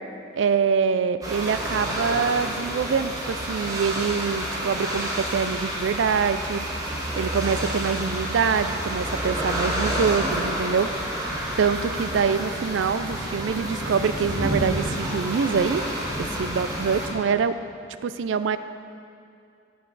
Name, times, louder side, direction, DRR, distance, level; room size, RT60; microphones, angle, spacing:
voice 1, 0.3-6.9 7.2-10.9 11.2-15.8 16.2-17.6 18.0-18.6, right 6 dB, 75° right, 12 dB, 0.4 m, -25 dB
thunder siren, 1.2-17.1, equal, 20° right, 1.3 m, -29 dB
8.9 x 7.6 x 4.0 m, 2.5 s
head